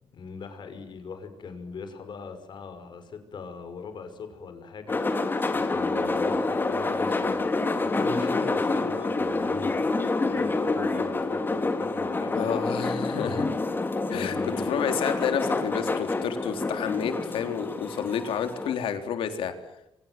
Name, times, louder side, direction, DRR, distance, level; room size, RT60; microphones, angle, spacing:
voice 1, 0.0-9.8 10.2-12.5 13.2-13.5 14.1-14.8, left 5 dB, 60° left, 8 dB, 5.5 m, -40 dB
sound 1, 4.9-18.7, left 3 dB, 25° left, 2.9 m, -27 dB
voice 2, 12.3-13.5 14.1-19.5, left 7 dB, 90° left, 7 dB, 3.7 m, -30 dB
29.5 x 25.0 x 7.7 m, 0.84 s
cardioid pair, 120°, 9 cm